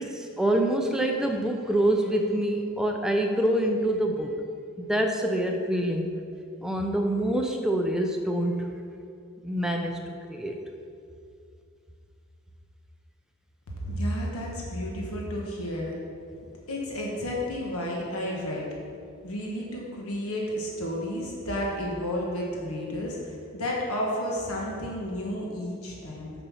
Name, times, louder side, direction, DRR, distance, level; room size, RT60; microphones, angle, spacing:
voice 1, 0.0-4.3 4.8-6.1 6.6-8.7 9.4-10.6, right 1 dB, 5° right, 2 dB, 0.6 m, -26 dB
voice 2, 13.8-16.0 16.4-18.7 19.2-26.3, equal, 80° left, -2 dB, 1.4 m, -32 dB
7.2 x 6.7 x 5.7 m, 2.4 s
head